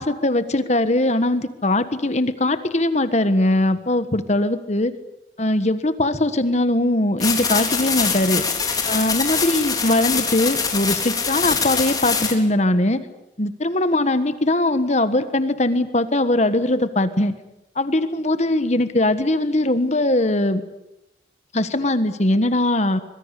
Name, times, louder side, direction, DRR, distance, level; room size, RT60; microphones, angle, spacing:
voice 1, 0.0-4.9 5.4-8.4 8.8-13.0 13.4-17.3 17.7-20.6 21.5-23.0, left 1 dB, 40° left, 11 dB, 1.5 m, -20 dB
sound 1, 7.2-12.3, left 5 dB, 20° left, 3.8 m, -23 dB
25.0 x 22.5 x 8.4 m, 0.89 s
head